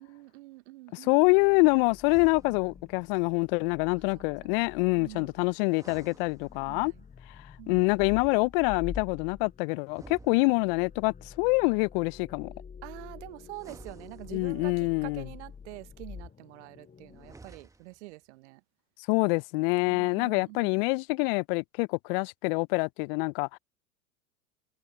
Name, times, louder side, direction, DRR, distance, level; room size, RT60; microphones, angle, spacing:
voice 1, 0.0-1.2 4.1-4.7 5.0-5.3 6.7-7.0 7.6-7.8 10.3-10.5 12.8-18.6 19.8-20.8, right 21 dB, 55° right, 1.1 m, -46 dB
voice 2, 0.9-6.9 7.7-12.5 14.3-15.2 19.1-23.6, left 33 dB, 45° left, 0.7 m, -26 dB
sound 1, 1.2-17.4, left 6 dB, 20° left, 6.1 m, -48 dB
sound 2, 2.0-2.9 5.6-7.0 9.8-11.0 13.5-14.8 17.1-18.1, right 3 dB, 10° right, 1.8 m, -52 dB
hypercardioid pair, 95°, 41 cm